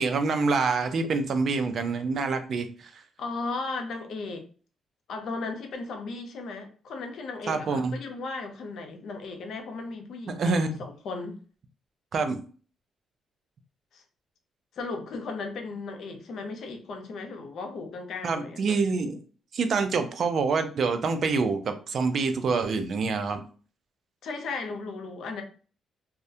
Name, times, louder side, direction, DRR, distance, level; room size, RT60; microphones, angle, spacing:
voice 1, 0.0-2.7 7.5-7.9 10.3-10.7 12.1-12.4 18.2-19.2 19.5-23.4, right 4 dB, 55° right, 0.4 m, -26 dB
voice 2, 3.2-4.5 5.1-11.4 13.9-14.0 14.7-18.8 24.2-25.4, left 3 dB, 70° left, 0.5 m, -36 dB
2.3 x 2.1 x 2.6 m
cardioid pair, 95°, 0 cm